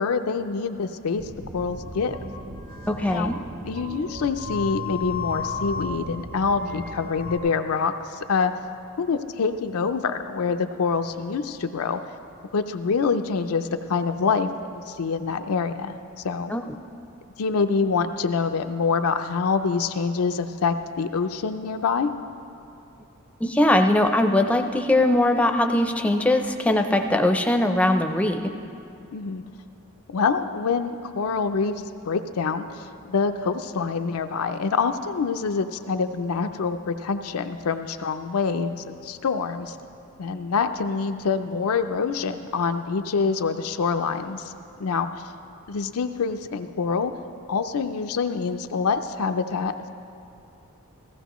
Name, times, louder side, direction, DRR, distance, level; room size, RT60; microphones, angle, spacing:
voice 1, 0.0-2.2 3.1-3.3 3.7-8.5 9.0-12.0 12.5-16.0 16.2-16.5 17.4-22.1 29.1-29.4 30.1-39.8 40.2-44.5 44.8-45.2 45.7-47.1 47.5-49.9, left 5 dB, 80° left, 7 dB, 0.5 m, -26 dB
sound 1, 1.2-7.4, left 3 dB, 45° right, 0.8 m, -34 dB
voice 2, 2.9-3.4 16.5-16.6 23.4-28.4, left 1 dB, 5° left, 5 dB, 0.5 m, -21 dB
15.5 x 15.5 x 3.0 m, 2.6 s
head